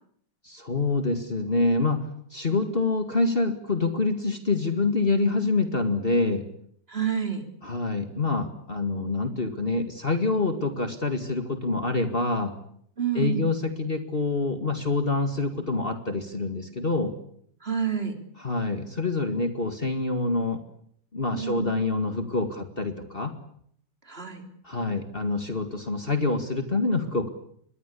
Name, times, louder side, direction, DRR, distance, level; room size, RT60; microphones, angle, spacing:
voice 1, 0.4-6.4 7.6-12.5 13.1-17.1 18.4-20.6 21.1-23.3 24.6-27.3, left 3 dB, 30° left, 7 dB, 2.3 m, -26 dB
voice 2, 2.5-2.8 6.9-7.4 13.0-13.5 17.6-18.2 21.3-21.7 24.1-24.4, right 7 dB, 35° right, 6 dB, 3.8 m, -29 dB
26.5 x 22.0 x 8.5 m, 0.67 s
omnidirectional pair, 1.9 m